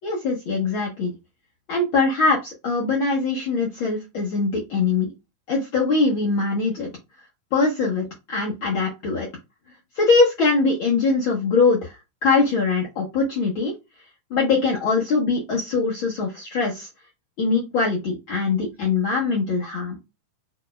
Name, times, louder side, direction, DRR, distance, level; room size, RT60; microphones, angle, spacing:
voice 1, 0.0-1.1 1.7-5.1 5.5-6.9 7.5-9.3 10.0-12.0 12.2-13.7 14.3-16.9 17.4-20.0, left 4 dB, 80° left, -3 dB, 1.1 m, -22 dB
5.2 x 4.3 x 2.2 m, 0.24 s
omnidirectional pair, 4.0 m